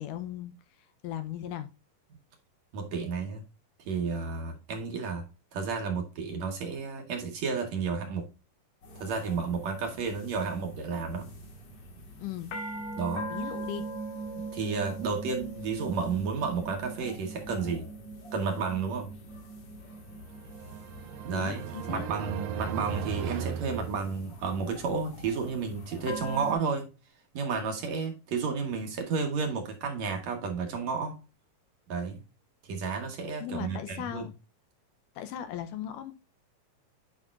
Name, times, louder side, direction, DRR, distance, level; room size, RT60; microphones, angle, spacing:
voice 1, 0.0-1.7 12.2-12.5 13.3-13.9 21.3-22.1 33.4-34.3 35.2-36.1, left 11 dB, 80° left, 2.0 m, -38 dB
voice 2, 2.7-3.4 3.9-5.3 5.5-8.3 9.0-11.3 13.0-13.3 14.5-17.9 18.3-19.1 21.2-26.9 27.3-31.2 31.9-32.2 32.7-34.2, right 5 dB, 60° right, 2.1 m, -32 dB
sound 1, 8.8-26.5, right 2 dB, 55° left, 2.8 m, -42 dB
sound 2, 20.1-24.6, right 9 dB, 85° right, 2.4 m, -37 dB
9.6 x 5.0 x 2.4 m
omnidirectional pair, 4.0 m